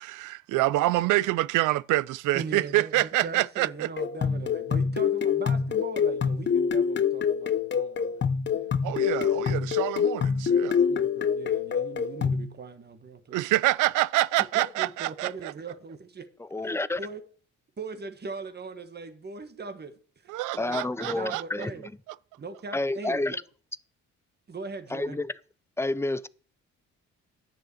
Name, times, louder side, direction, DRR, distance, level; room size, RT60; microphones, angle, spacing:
voice 1, 0.0-3.9 8.8-10.8 13.3-15.3 20.3-21.4, right 17 dB, 85° right, 0.5 m, -26 dB
voice 2, 2.3-9.4 10.9-13.5 14.5-16.3 16.6-16.7 17.0-17.2 17.8-19.9 20.2-20.8 21.1-21.9 22.4-23.2 24.5-25.2, right 4 dB, 35° right, 1.6 m, -40 dB
sound 1, 4.0-12.5, left 7 dB, 35° left, 0.9 m, -26 dB
voice 3, 16.4-17.0 20.6-21.7 22.7-23.4 24.9-25.3 25.8-26.3, left 2 dB, 10° left, 0.6 m, -29 dB
11.0 x 6.3 x 8.4 m
cardioid pair, 90°, 30 cm